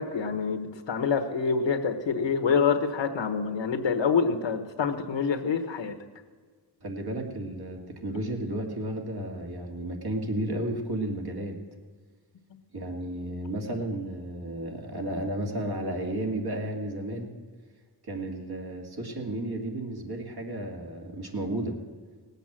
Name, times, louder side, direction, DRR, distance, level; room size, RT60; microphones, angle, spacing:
voice 1, 0.0-6.0, left 5 dB, 80° left, 7 dB, 1.3 m, -26 dB
voice 2, 6.8-11.6 12.7-17.3 18.0-21.8, right 1 dB, 60° right, 1 dB, 2.5 m, -33 dB
18.5 x 8.2 x 7.5 m, 1.6 s
wide cardioid pair, 85°, 43 cm